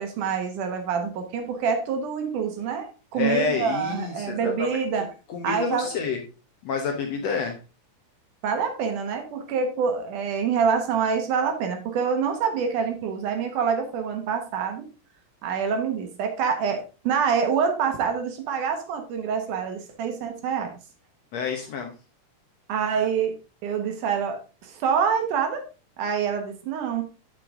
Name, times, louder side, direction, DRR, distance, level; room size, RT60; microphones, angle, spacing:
voice 1, 0.0-5.1 5.4-5.9 8.4-14.9 15.4-20.7 22.7-23.3 23.6-25.6 26.0-27.0, right 6 dB, 70° right, 5 dB, 2.5 m, -26 dB
voice 2, 3.1-6.2 6.6-7.6 21.3-21.9, left 5 dB, 65° left, 3 dB, 1.7 m, -29 dB
7.6 x 6.6 x 3.6 m, 0.32 s
omnidirectional pair, 3.9 m